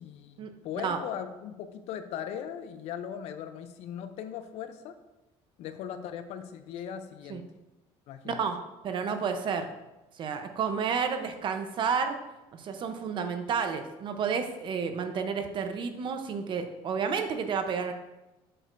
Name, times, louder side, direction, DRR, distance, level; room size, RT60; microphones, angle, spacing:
voice 1, 0.0-5.0 5.6-7.4 8.1-8.4, left 9 dB, 70° left, 10 dB, 0.6 m, -39 dB
voice 2, 8.2-8.6 8.8-9.7 10.2-12.2 12.5-17.9, right 6 dB, 45° right, 7 dB, 0.8 m, -31 dB
7.7 x 6.4 x 2.6 m, 1.0 s
cardioid pair, 120°, 11 cm